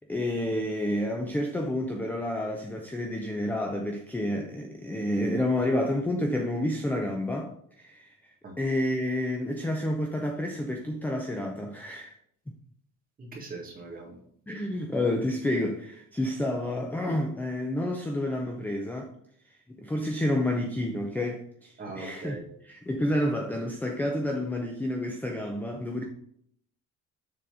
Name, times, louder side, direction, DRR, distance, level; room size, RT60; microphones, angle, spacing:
voice 1, 0.1-12.1 14.5-19.1 19.7-22.4 22.6-26.0, left 1 dB, 5° left, 0.4 m, -29 dB
voice 2, 13.2-14.2 21.8-22.4, right 3 dB, 30° right, 1.8 m, -40 dB
6.9 x 3.8 x 4.9 m
cardioid pair, 175°, 31 cm